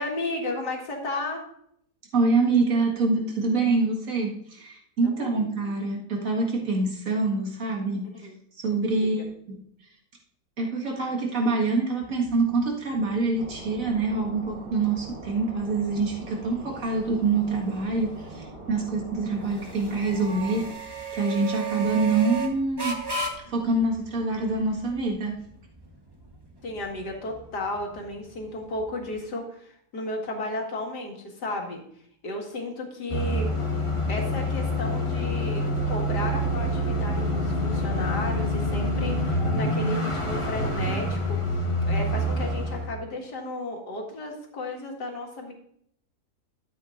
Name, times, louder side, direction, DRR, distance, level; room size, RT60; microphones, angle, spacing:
voice 1, 0.0-1.4 5.0-5.5 8.2-8.4 8.8-9.1 26.6-31.8 32.2-33.5 34.1-41.4 41.8-45.5, left 2 dB, 80° left, 1 dB, 2.4 m, -33 dB
voice 2, 2.1-8.1 8.6-9.2 9.5-9.6 10.6-20.8 21.1-23.0 23.5-25.3, right 3 dB, 55° right, 0 dB, 2.1 m, -25 dB
sound 1, 12.0-29.2, right 4 dB, 15° right, 1.0 m, -38 dB
sound 2, 13.4-20.7, right 2 dB, 35° right, 1.4 m, -42 dB
sound 3, 33.1-42.9, equal, 20° left, 1.2 m, -26 dB
12.5 x 8.3 x 2.5 m, 0.69 s
omnidirectional pair, 1.8 m